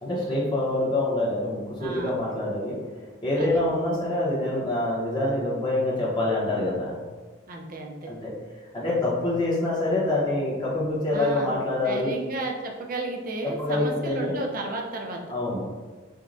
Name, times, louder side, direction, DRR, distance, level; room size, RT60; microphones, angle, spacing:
voice 1, 0.0-2.8 3.2-7.0 8.1-8.3 8.7-12.1 13.6-14.4 15.3-15.6, left 2 dB, 20° left, -7 dB, 0.9 m, -26 dB
voice 2, 1.8-2.1 3.4-3.6 7.5-8.1 11.1-11.6 11.8-15.2, right 2 dB, 45° right, 1 dB, 0.5 m, -33 dB
6.2 x 2.2 x 2.6 m, 1.4 s
head